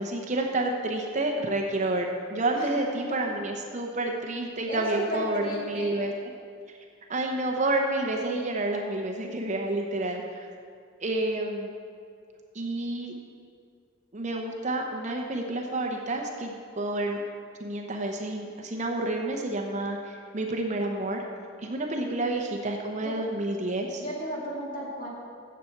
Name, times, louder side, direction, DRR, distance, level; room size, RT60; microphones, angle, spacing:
voice 1, 0.0-6.1 7.1-10.5 11.0-11.7 12.5-13.1 14.1-17.2 17.6-21.2 21.6-24.0, right 2 dB, 35° right, 2 dB, 0.7 m, -29 dB
voice 2, 2.5-3.2 4.7-6.1 23.0-23.2 24.0-25.1, equal, 40° left, -5 dB, 2.3 m, -35 dB
7.5 x 7.1 x 7.8 m, 2.3 s
head